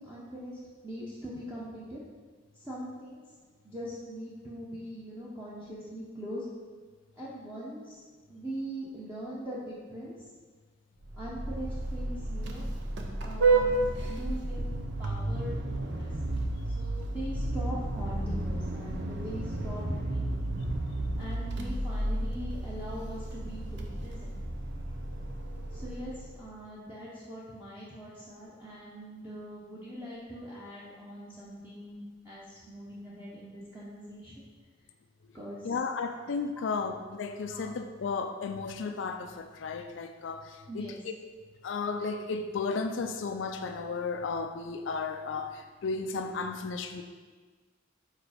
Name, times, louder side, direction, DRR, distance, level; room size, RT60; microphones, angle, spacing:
voice 1, 0.0-2.0 2.5-3.2 3.6-6.4 7.2-8.0 8.3-10.1 11.2-12.7 13.2-13.7 14.0-14.6 15.0-16.1 16.7-20.5 21.2-24.4 25.7-34.4 35.3-35.7 36.6-36.7 37.5-37.7 40.7-41.0, equal, 10° right, -8 dB, 0.9 m, -41 dB
Vehicle horn car horn honking, 11.0-26.4, right 2 dB, 65° right, 0.7 m, -32 dB
voice 2, 35.6-41.1 41.6-47.0, left 4 dB, 70° left, 6 dB, 0.4 m, -34 dB
5.0 x 4.6 x 5.0 m, 1.4 s
head